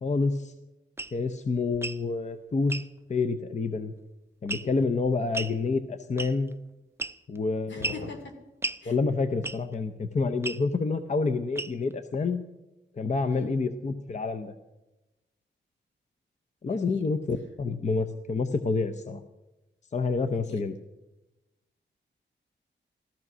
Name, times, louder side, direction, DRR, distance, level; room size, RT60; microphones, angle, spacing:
voice 1, 0.0-0.5 1.1-2.7 3.1-3.9 4.4-6.5 7.3-8.0 8.9-12.4 13.0-14.5 16.6-19.2 19.9-20.7, left 4 dB, 35° left, 8 dB, 0.7 m, -28 dB
sound 1, 1.0-1.2 1.7-2.0 2.7-2.9 4.5-4.8 5.3-5.6 6.2-6.5 7.0-7.4 7.8-8.1 8.6-8.8 9.4-9.7 10.4-10.6 11.6-11.9, right 2 dB, 15° right, 0.5 m, -33 dB
voice 2, 7.7-8.3 8.8-9.0 13.3-13.5 16.6-17.0 20.5-20.6, left 3 dB, 70° left, 5 dB, 2.6 m, -41 dB
15.0 x 13.5 x 6.1 m, 1.0 s
wide cardioid pair, 150°, 20 cm